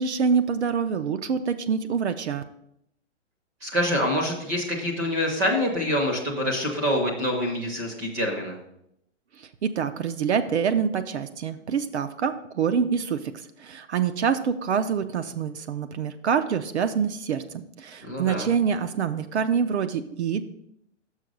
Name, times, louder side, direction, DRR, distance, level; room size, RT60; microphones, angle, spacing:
voice 1, 0.0-2.4 9.4-20.5, right 6 dB, 65° right, 9 dB, 0.6 m, -26 dB
voice 2, 3.6-8.6 18.0-18.5, left 1 dB, 15° right, -1 dB, 0.6 m, -26 dB
6.4 x 5.5 x 5.2 m, 0.77 s
hypercardioid pair, 165°, 37 cm